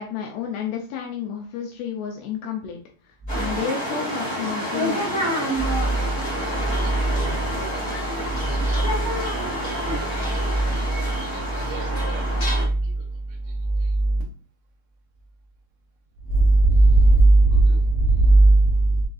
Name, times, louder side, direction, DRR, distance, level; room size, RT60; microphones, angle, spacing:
voice 1, 0.0-2.8 3.1-5.2, left 7 dB, 90° left, 1 dB, 2.2 m, -31 dB
sound 1, 3.3-12.6, equal, 35° left, 1.4 m, -28 dB
voice 2, 5.7-6.1 6.7-9.0 9.6-10.0 10.5-10.8 11.5-12.7 14.0-14.2 16.3-18.9, right 2 dB, 85° right, -6 dB, 3.0 m, -19 dB
7.0 x 2.4 x 2.3 m, 0.40 s
omnidirectional pair, 5.2 m